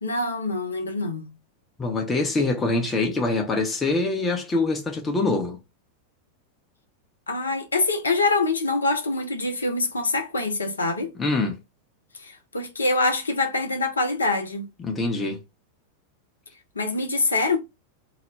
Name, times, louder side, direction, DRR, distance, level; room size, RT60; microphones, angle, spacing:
voice 1, 0.0-1.3 7.3-11.1 12.2-14.7 16.8-17.6, left 3 dB, 75° left, 0.6 m, -25 dB
voice 2, 1.8-5.6 11.2-11.6 14.8-15.4, left 3 dB, 15° left, 0.6 m, -24 dB
2.3 x 2.1 x 3.0 m
figure-of-eight pair, 90°, 0 cm